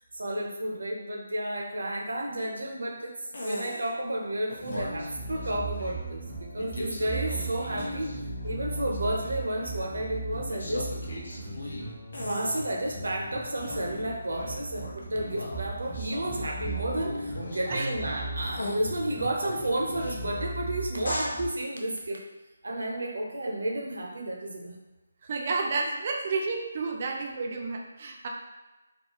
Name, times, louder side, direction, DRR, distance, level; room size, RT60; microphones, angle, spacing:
voice 1, 0.1-3.1 3.4-8.1 8.4-10.9 12.2-22.2 22.6-24.8, right 1 dB, 80° right, -1 dB, 0.6 m, -32 dB
sound 1, 3.3-3.9 4.5-6.1 6.6-8.2 8.4-9.9 10.5-12.9 13.4-18.3 18.6-18.8 19.2-20.4 21.0-21.3, left 1 dB, 70° left, 0.6 m, -39 dB
sound 2, 4.6-21.5, right 2 dB, 25° left, 0.9 m, -37 dB
voice 2, 25.2-28.3, right 4 dB, 35° right, 1 dB, 0.4 m, -31 dB
2.3 x 2.3 x 2.8 m, 1.1 s
hypercardioid pair, 170°, 0 cm